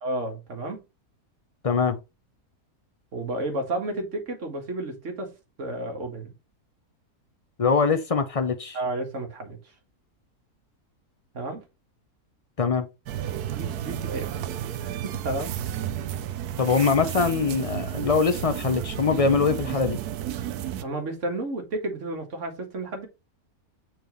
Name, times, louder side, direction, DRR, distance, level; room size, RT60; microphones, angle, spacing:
voice 1, 0.0-0.8 3.1-5.3 5.6-6.3 8.7-9.6 11.3-11.6 13.4-14.4 14.8-15.6 20.8-23.1, right 2 dB, 50° right, 1.9 m, -32 dB
voice 2, 1.6-2.0 7.6-8.8 12.6-12.9 16.6-20.0, left 5 dB, 45° left, 0.4 m, -23 dB
sound 1, 13.1-20.8, right 10 dB, 80° right, 1.2 m, -32 dB
7.0 x 4.5 x 3.1 m
omnidirectional pair, 1.6 m